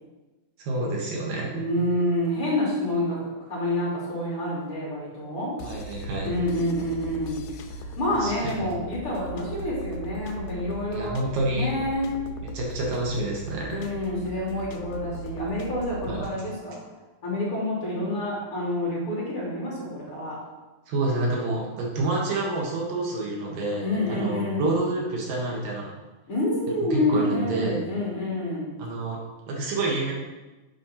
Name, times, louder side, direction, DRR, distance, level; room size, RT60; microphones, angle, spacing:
voice 1, 0.6-1.6 5.6-6.3 8.2-8.6 10.9-11.7 12.5-13.8 16.1-16.3 20.9-25.9 26.9-27.8 28.8-29.2 29.5-30.1, right 2 dB, 70° right, -2 dB, 3.1 m, -28 dB
voice 2, 1.5-3.2 3.5-5.6 6.2-7.4 7.7-12.2 13.7-16.8 17.2-20.4 23.8-24.9 26.3-28.8, left 1 dB, 40° left, -6 dB, 3.1 m, -28 dB
sound 1, 5.6-16.3, equal, 85° left, 2.6 m, -38 dB
8.4 x 5.4 x 5.8 m, 1.1 s
omnidirectional pair, 4.1 m